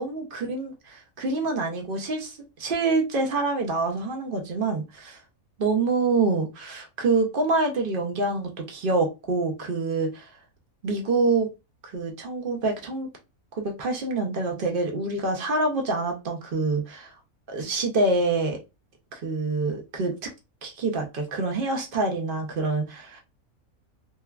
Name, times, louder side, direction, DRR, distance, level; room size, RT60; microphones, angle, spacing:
voice 1, 0.0-5.2 5.6-10.3 10.8-11.5 11.8-13.1 13.5-17.1 17.5-18.6 19.1-20.3 20.6-23.2, right 3 dB, 55° right, 0.6 m, -26 dB
3.2 x 2.2 x 2.3 m
omnidirectional pair, 1.5 m